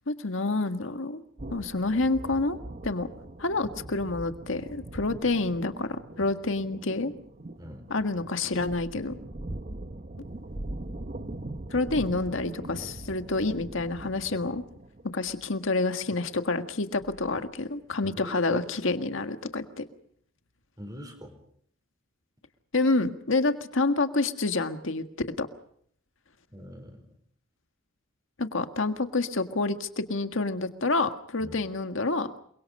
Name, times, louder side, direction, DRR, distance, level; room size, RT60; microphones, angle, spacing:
voice 1, 0.1-1.2 1.5-2.6 2.8-3.1 3.4-7.1 7.9-9.2 11.7-14.6 15.1-19.8 22.7-25.0 25.4-25.5 28.4-32.3, left 3 dB, 75° left, 7 dB, 1.7 m, -28 dB
sound 1, 1.4-17.6, right 1 dB, 40° right, 0.9 m, -41 dB
voice 2, 18.0-18.6 20.8-21.3 26.5-27.0 31.4-31.6, equal, 20° right, 6 dB, 4.6 m, -41 dB
29.0 x 23.5 x 5.4 m, 0.65 s
head